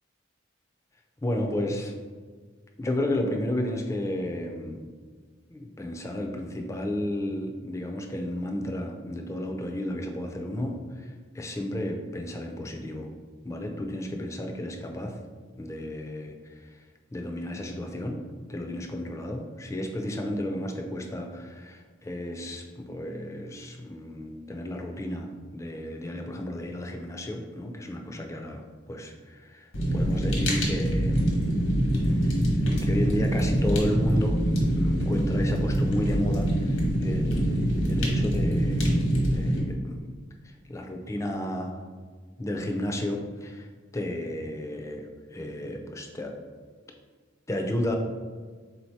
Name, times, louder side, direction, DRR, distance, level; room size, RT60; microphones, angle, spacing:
voice 1, 1.2-1.9 2.8-4.8 5.5-13.1 13.4-15.2 15.6-16.8 17.1-18.2 18.5-28.6 28.9-31.5 32.2-34.4 34.8-40.1 40.4-41.8 42.4-43.7 43.9-46.3 47.5-48.0, left 1 dB, 15° left, 2 dB, 0.4 m, -32 dB
Fire, 29.7-39.6, equal, 80° left, 1.1 m, -24 dB
3.8 x 2.7 x 4.5 m, 1.6 s
head